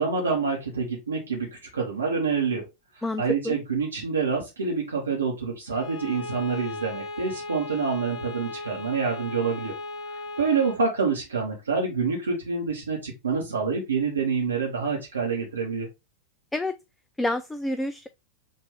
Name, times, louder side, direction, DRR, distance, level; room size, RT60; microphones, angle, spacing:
voice 1, 0.0-2.6 3.0-9.7 10.1-15.9, right 5 dB, 70° right, 1.0 m, -27 dB
voice 2, 3.0-3.5 16.5-16.7 17.2-18.1, left 1 dB, 5° left, 0.3 m, -28 dB
Bowed string instrument, 5.7-10.9, left 2 dB, 25° left, 0.9 m, -37 dB
5.4 x 2.6 x 3.2 m
figure-of-eight pair, 90°, 0 cm